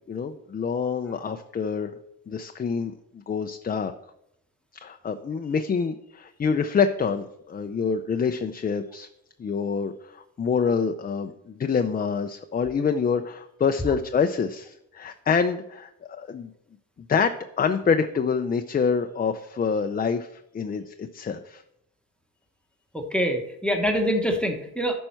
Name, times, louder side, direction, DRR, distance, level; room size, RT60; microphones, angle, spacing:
voice 1, 0.0-1.9 2.3-3.9 4.7-9.1 9.4-16.5 17.1-21.6, left 6 dB, 30° left, 7 dB, 0.4 m, -26 dB
voice 2, 22.9-25.0, equal, 5° left, 3 dB, 1.0 m, -25 dB
8.9 x 5.4 x 4.4 m, 0.80 s
cardioid pair, 100°, 31 cm